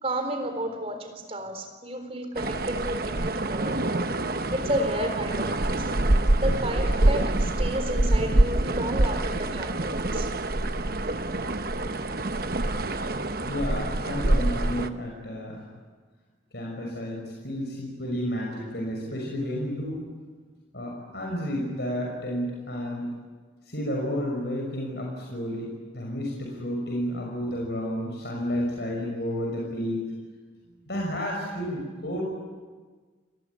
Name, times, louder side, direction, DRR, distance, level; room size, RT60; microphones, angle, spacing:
voice 1, 0.0-4.0 4.5-5.9 6.4-10.3, right 1 dB, 30° right, 6 dB, 3.9 m, -32 dB
sound 1, 2.4-14.9, right 1 dB, 50° right, 1.1 m, -26 dB
voice 2, 13.5-15.6 16.5-20.1 20.7-23.1 23.7-30.0 30.9-32.2, equal, 60° left, -1 dB, 6.1 m, -31 dB
29.0 x 21.0 x 9.8 m, 1.4 s
head